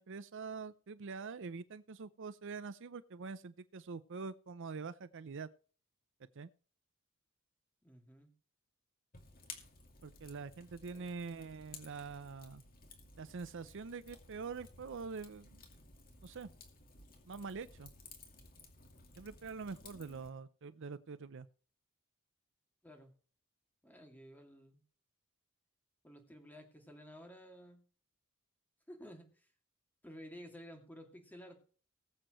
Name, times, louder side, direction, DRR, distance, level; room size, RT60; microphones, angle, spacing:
voice 1, 0.0-5.5 6.4-6.5 10.0-12.6 13.2-15.6 16.2-16.5 17.3-17.9 19.2-21.5, right 4 dB, 60° right, 0.6 m, -45 dB
voice 2, 7.8-8.3 10.9-11.1 19.7-20.2 22.8-23.1 23.8-24.8 26.0-27.8 28.9-29.5 30.0-31.6, equal, 10° left, 2.4 m, -53 dB
Fire, 9.1-20.3, left 4 dB, 45° left, 2.5 m, -56 dB
20.5 x 7.7 x 3.1 m
head